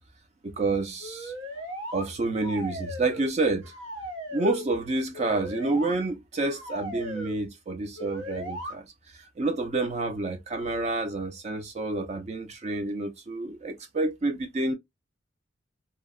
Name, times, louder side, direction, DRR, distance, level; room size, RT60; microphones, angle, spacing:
voice 1, 0.6-1.3 1.9-3.7 4.3-8.9 9.4-14.7, right 2 dB, 35° right, 0.4 m, -29 dB
sound 1, 1.0-2.1 2.4-3.3 3.6-4.7 5.1-5.9 6.4-7.4 8.0-8.7, equal, 80° right, 0.8 m, -37 dB
2.8 x 2.0 x 2.2 m
head